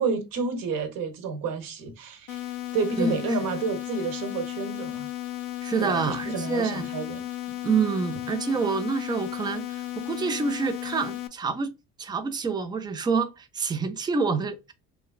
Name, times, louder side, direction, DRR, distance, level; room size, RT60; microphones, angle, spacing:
voice 1, 0.0-5.1 5.8-7.3, right 4 dB, 65° right, 0.9 m, -30 dB
sound 1, 2.3-11.3, left 15 dB, 55° left, 0.5 m, -34 dB
voice 2, 5.6-6.9 7.6-11.7 12.0-14.7, right 5 dB, 10° right, 0.4 m, -27 dB
3.2 x 2.3 x 2.3 m
cardioid pair, 110°, 37 cm